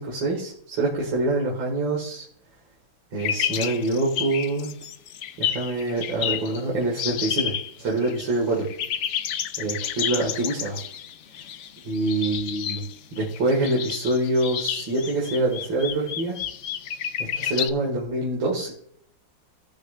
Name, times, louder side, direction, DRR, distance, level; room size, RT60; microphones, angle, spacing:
voice 1, 0.0-2.2 3.1-4.7 5.4-7.5 7.8-8.7 9.6-10.8 11.8-12.8 13.1-16.4 17.3-18.7, right 2 dB, 90° right, -3 dB, 2.8 m, -25 dB
sound 1, 3.2-6.6 7.0-8.4 8.6-17.7, left 9 dB, 90° left, 0.6 m, -30 dB
18.0 x 6.6 x 2.5 m, 0.66 s
omnidirectional pair, 2.0 m